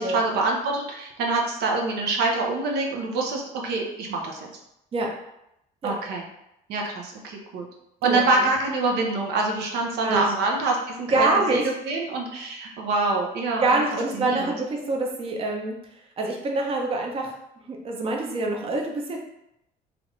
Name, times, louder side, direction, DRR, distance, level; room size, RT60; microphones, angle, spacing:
voice 1, 0.0-4.5 5.8-6.2 6.7-7.7 8.0-13.8 14.1-14.5, right 3 dB, 75° right, 1 dB, 0.7 m, -25 dB
voice 2, 8.0-8.5 10.0-10.3 11.1-11.7 13.6-15.8 16.2-17.3 17.7-19.2, right 2 dB, 35° right, 0 dB, 0.6 m, -25 dB
3.3 x 2.4 x 3.1 m, 0.83 s
cardioid pair, 110°, 17 cm